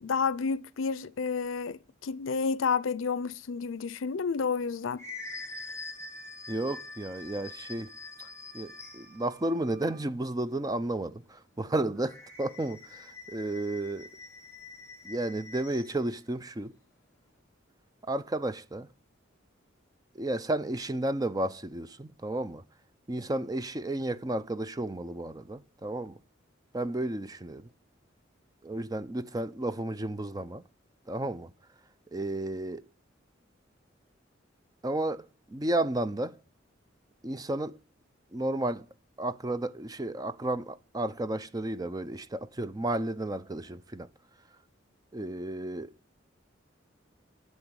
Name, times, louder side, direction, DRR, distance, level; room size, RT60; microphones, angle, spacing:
voice 1, 0.0-5.0, left 5 dB, 85° left, 0.5 m, -30 dB
sound 1, 4.5-9.3 12.0-16.0, left 3 dB, 15° left, 2.0 m, -45 dB
sound 2, 5.9-10.1, right 8 dB, 40° left, 4.9 m, -58 dB
voice 2, 6.5-7.9 8.2-8.3 8.5-14.1 15.0-16.7 18.0-18.9 20.1-22.6 23.1-26.2 26.7-27.7 28.6-30.7 31.1-31.5 32.1-32.8 34.8-36.4 37.2-37.8 38.3-38.9 39.2-44.1 45.1-45.9, right 1 dB, 20° right, 0.5 m, -32 dB
9.9 x 7.3 x 8.6 m
head